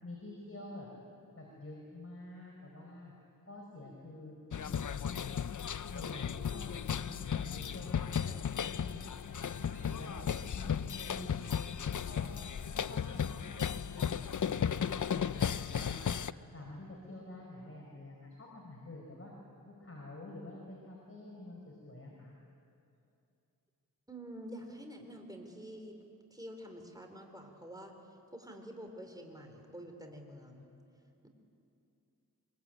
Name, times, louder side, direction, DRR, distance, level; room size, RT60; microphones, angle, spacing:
voice 1, 0.0-0.9 1.3-3.1 3.4-5.4 5.9-9.0 9.4-12.3 12.7-16.0 16.5-19.3 19.8-22.4, left 2 dB, 35° left, -2 dB, 4.9 m, -48 dB
sound 1, 4.5-16.3, left 8 dB, 55° left, 0.6 m, -35 dB
voice 2, 24.1-26.0 26.3-28.0 28.3-30.7, equal, 10° right, 3 dB, 3.9 m, -48 dB
24.0 x 23.0 x 9.1 m, 2.6 s
wide cardioid pair, 60°, 37 cm